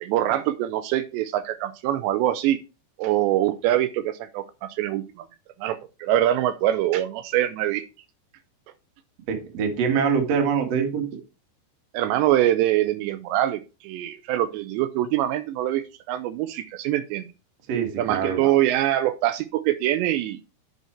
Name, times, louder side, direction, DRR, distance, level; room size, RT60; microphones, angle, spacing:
voice 1, 0.0-2.6 3.0-5.3 5.6-7.8 11.9-17.3 18.0-20.4, right 13 dB, 80° right, 11 dB, 2.8 m, -24 dB
voice 2, 9.3-11.0 17.7-18.6, right 6 dB, 50° right, 4 dB, 2.1 m, -24 dB
8.2 x 6.2 x 4.4 m, 0.30 s
omnidirectional pair, 5.2 m